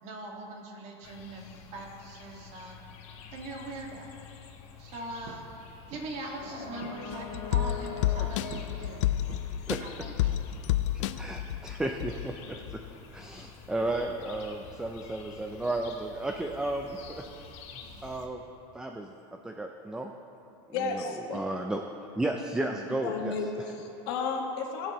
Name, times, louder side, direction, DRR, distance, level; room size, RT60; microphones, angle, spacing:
voice 1, 0.0-2.8 3.3-4.1 4.8-5.5 5.9-9.0 9.8-10.3, right 2 dB, 45° right, 0 dB, 1.8 m, -41 dB
sound 1, 1.0-18.3, left 6 dB, 45° left, 1.2 m, -46 dB
sound 2, 5.3-5.5 5.9-6.2 6.8-7.1 7.3-7.8 8.5-8.8 9.3-9.7 10.2-10.7, right 7 dB, 65° right, 0.9 m, -46 dB
sound 3, 7.1-12.3 12.7-12.8, left 13 dB, 85° left, 0.4 m, -30 dB
voice 2, 10.9-12.8 13.1-17.2 18.0-18.4 18.7-19.1 19.4-20.1 20.9-21.0 21.3-21.8 22.2-23.4, right 2 dB, 5° right, 4 dB, 0.4 m, -33 dB
voice 3, 20.7-21.4 23.0-24.9, left 4 dB, 65° left, 1 dB, 1.6 m, -33 dB
19.5 x 7.9 x 3.0 m, 2.9 s
supercardioid pair, 145°, 15 cm